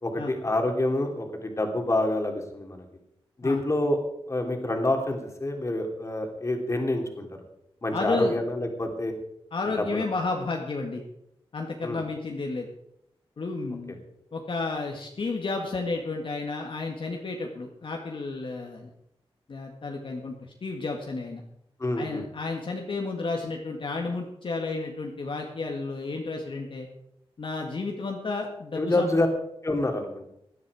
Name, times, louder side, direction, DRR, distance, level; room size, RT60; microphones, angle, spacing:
voice 1, 0.0-2.8 3.4-4.0 4.3-7.3 7.8-9.1 9.8-10.0 11.8-12.0 21.8-22.2 28.8-29.3 29.6-30.2, left 1 dB, 30° left, 4 dB, 2.7 m, -27 dB
voice 2, 7.9-8.4 9.5-11.0 11.5-12.7 13.4-14.0 14.3-18.9 19.5-20.3 20.6-21.4 22.0-26.9 27.4-29.1, left 3 dB, 55° left, 1 dB, 1.7 m, -31 dB
17.5 x 11.0 x 4.9 m, 0.79 s
wide cardioid pair, 120°, 10 cm